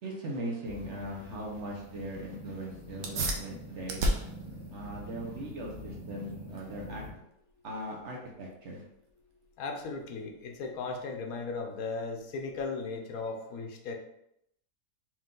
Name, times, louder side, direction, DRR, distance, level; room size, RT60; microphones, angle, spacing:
voice 1, 0.0-4.1 4.7-7.0 7.6-8.8, right 1 dB, 55° right, -1 dB, 1.1 m, -39 dB
sound 1, 0.6-7.1, equal, 5° right, 1.1 m, -46 dB
sound 2, 3.0-13.0, right 1 dB, 75° right, 1.1 m, -38 dB
voice 2, 9.6-14.0, left 4 dB, 75° left, 3 dB, 1.1 m, -36 dB
4.4 x 2.6 x 3.7 m, 0.78 s
omnidirectional pair, 1.6 m